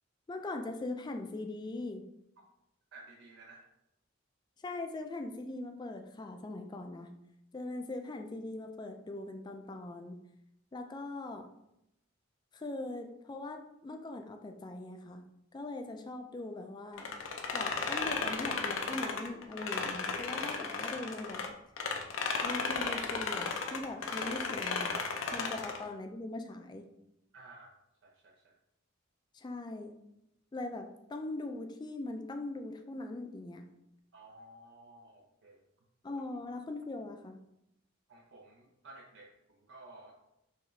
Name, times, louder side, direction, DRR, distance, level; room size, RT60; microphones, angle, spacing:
voice 1, 0.3-2.1 4.6-7.1 7.5-10.2 10.7-11.5 12.5-15.2 15.5-17.1 17.5-21.4 22.4-25.0 25.3-26.9 29.3-29.9 30.5-33.7 36.0-37.4, left 2 dB, 20° left, 5 dB, 0.3 m, -41 dB
voice 2, 2.9-3.7 25.4-25.5 27.3-27.7 28.0-28.6 34.1-35.6 38.1-40.1, right 2 dB, 60° right, -1 dB, 0.5 m, -54 dB
sound 1, 17.0-21.5 21.8-25.8, left 4 dB, 70° left, 0.5 m, -34 dB
4.6 x 3.4 x 3.2 m, 0.83 s
head